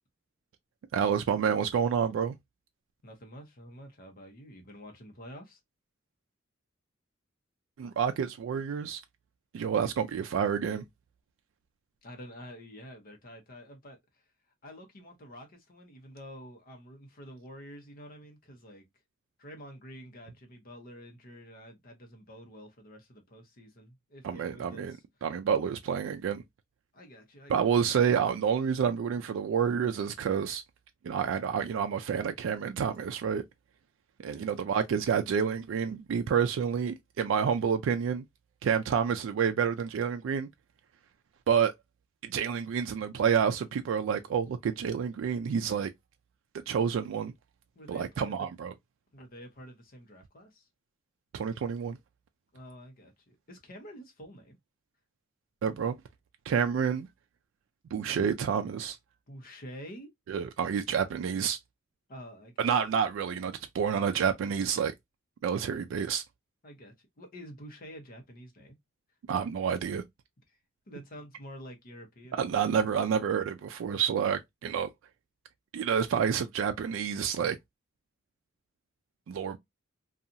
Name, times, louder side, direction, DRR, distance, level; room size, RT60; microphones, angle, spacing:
voice 1, 0.9-2.3 7.8-9.0 9.5-10.8 24.2-25.0 25.2-26.4 27.5-30.6 31.0-33.4 34.2-38.2 38.6-40.5 41.5-41.7 42.2-45.9 46.7-47.3 47.9-48.7 51.3-52.0 55.6-55.9 56.5-57.1 57.9-59.0 60.3-61.6 62.6-64.9 65.4-66.2 69.3-70.0 72.3-74.9 75.7-77.6 79.3-79.6, right 7 dB, 75° right, 0.3 m, -29 dB
voice 2, 3.0-5.6 12.0-14.2 14.6-18.8 19.4-25.0 26.9-27.9 34.2-34.5 47.7-48.5 49.1-50.7 52.5-54.6 59.3-60.1 62.1-62.6 66.6-68.8 70.9-72.4, equal, 45° left, 0.8 m, -48 dB
2.7 x 2.3 x 2.5 m
head